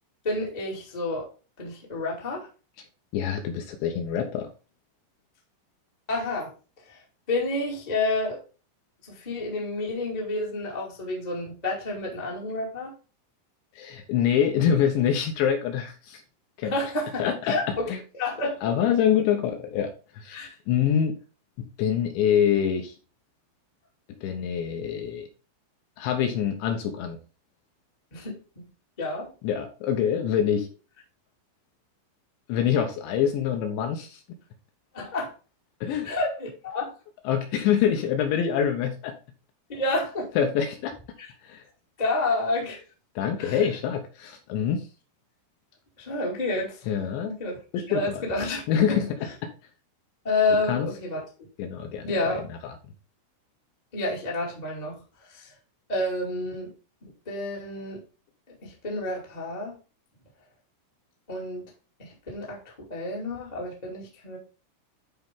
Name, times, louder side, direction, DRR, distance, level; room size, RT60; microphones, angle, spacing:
voice 1, 0.2-1.3 1.6-2.5 6.1-6.5 6.9-7.0 7.3-8.4 9.0-12.9 16.6-18.6 20.3-20.5 28.1-28.7 29.0-29.3 34.9-35.3 36.0-36.9 39.7-40.3 42.0-42.8 43.4-43.6 46.0-46.9 47.2-47.6 47.9-49.0 50.2-51.2 52.0-52.5 53.9-54.9 55.3-55.5 55.9-56.7 57.0-58.0 58.6-59.8 61.3-61.6 62.0-64.4, left 2 dB, 20° left, -3 dB, 1.1 m, -29 dB
voice 2, 3.1-4.5 13.8-16.2 16.6-16.7 17.2-17.6 17.9-18.0 18.6-20.4 20.7-21.2 21.6-23.0 24.2-25.3 26.0-27.2 29.4-30.7 32.5-34.2 35.8-36.1 37.2-39.2 40.4-40.9 41.4-41.6 43.2-44.9 46.9-47.3 47.7-48.2 48.7-49.3 50.7-50.9 51.6-52.3 52.6-52.7, left 8 dB, 75° left, 4 dB, 2.9 m, -25 dB
10.5 x 4.5 x 3.6 m, 0.33 s
omnidirectional pair, 5.8 m